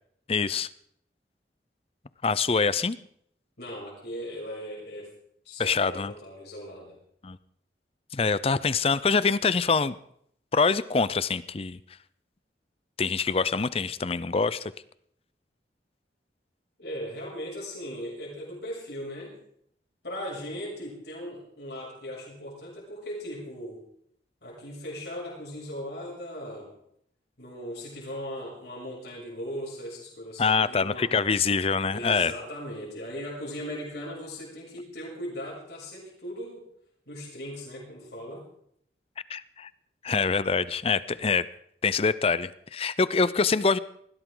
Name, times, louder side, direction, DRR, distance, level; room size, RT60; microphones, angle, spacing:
voice 1, 0.3-0.7 2.2-3.0 5.6-6.1 7.2-7.4 8.1-9.9 10.5-11.8 13.0-14.7 30.4-32.3 39.3-39.7 40.0-41.5 41.8-43.8, left 4 dB, 35° left, 17 dB, 0.5 m, -25 dB
voice 2, 3.6-5.1 5.4-7.0 16.8-19.4 20.0-23.8 24.4-26.7 27.4-31.1 31.9-36.6 37.1-38.5, equal, 70° left, -4 dB, 7.1 m, -38 dB
20.0 x 16.0 x 3.9 m, 0.70 s
head